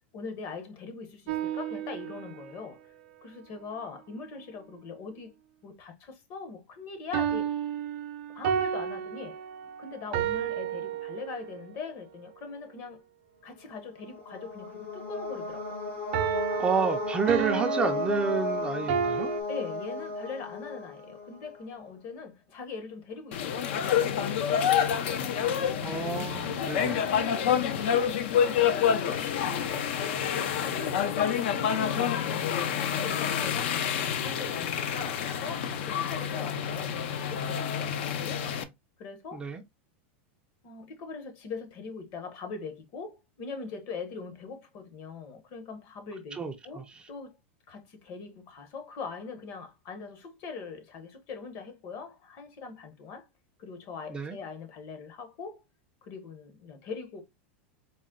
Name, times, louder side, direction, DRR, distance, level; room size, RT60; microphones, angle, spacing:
voice 1, 0.1-2.9 3.2-7.5 8.3-9.4 9.8-13.0 13.4-15.8 19.5-24.1 25.3-25.9 26.5-29.9 30.6-38.4 39.0-39.5 40.6-47.4 47.7-53.3 53.6-55.6 56.0-57.2, left 4 dB, 45° left, 1.0 m, -41 dB
sound 1, 1.3-2.7 7.1-11.7 16.1-19.4, right 9 dB, 60° right, 0.6 m, -32 dB
sound 2, 13.9-21.6, left 2 dB, 80° left, 1.9 m, -34 dB
voice 2, 16.6-19.3 25.8-26.9 39.3-39.6 46.4-46.8 54.1-54.4, right 5 dB, 15° right, 0.4 m, -29 dB
sound 3, 23.3-38.6, left 8 dB, 65° left, 0.6 m, -28 dB
4.1 x 2.1 x 3.7 m
supercardioid pair, 140°, 7 cm